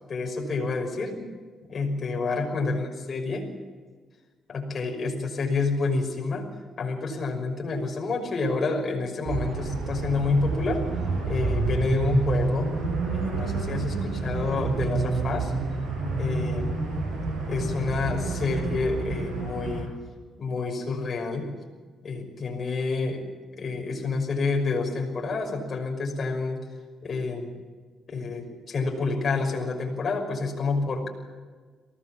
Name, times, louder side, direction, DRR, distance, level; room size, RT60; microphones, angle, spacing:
voice 1, 0.1-1.2 1.7-3.5 4.5-6.5 6.8-10.8 11.3-12.7 13.1-15.5 16.2-16.7 17.5-19.9 20.4-21.5 22.0-23.2 23.5-26.6 27.0-27.5 28.1-31.1, left 3 dB, 45° left, 1 dB, 6.0 m, -28 dB
sound 1, 9.3-19.8, right 3 dB, 70° right, 7.6 m, -28 dB
23.5 x 18.0 x 7.4 m, 1.5 s
cardioid pair, 90°, 0 cm